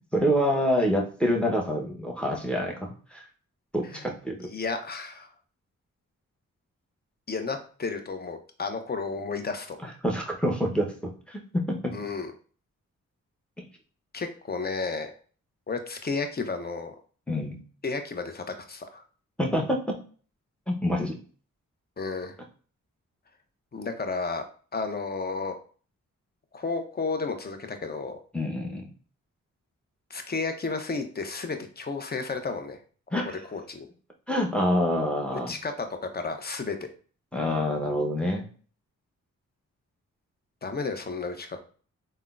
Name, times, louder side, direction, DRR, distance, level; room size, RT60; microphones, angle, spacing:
voice 1, 0.1-3.2 3.7-4.5 9.8-11.9 13.6-13.7 17.3-17.6 19.4-20.0 20.7-21.2 28.3-28.8 33.1-33.4 34.3-35.5 37.3-38.5, equal, 5° left, 1 dB, 0.8 m, -27 dB
voice 2, 4.5-5.3 7.3-9.8 11.9-12.3 14.1-15.1 15.7-16.9 17.8-19.0 22.0-22.4 23.7-24.4 24.7-25.6 26.5-28.2 30.1-32.8 33.1-33.2 33.5-33.9 35.5-36.9 40.6-41.6, left 4 dB, 30° left, 6 dB, 0.6 m, -32 dB
3.5 x 2.1 x 2.4 m, 0.41 s
cardioid pair, 45°, 33 cm